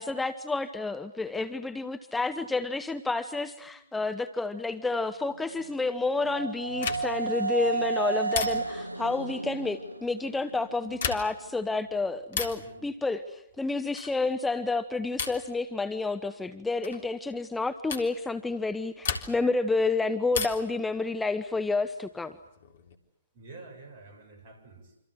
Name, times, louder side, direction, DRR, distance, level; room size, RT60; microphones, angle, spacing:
voice 1, 0.0-22.3, left 3 dB, 5° left, 9 dB, 1.0 m, -30 dB
sound 1, 5.3-11.2, right 4 dB, 85° right, 1.0 m, -33 dB
sound 2, 6.8-7.3 8.3-8.9 10.9-11.5 12.3-12.7 13.9-14.3 15.2-15.5 16.8-17.0 17.9-18.1 19.0-19.6 20.3-20.8 22.3-22.9, left 6 dB, 50° left, 3.5 m, -34 dB
voice 2, 12.5-12.8 23.3-24.9, right 3 dB, 40° right, 6 dB, 7.6 m, -49 dB
28.0 x 26.0 x 7.9 m, 0.82 s
figure-of-eight pair, 125°, 0 cm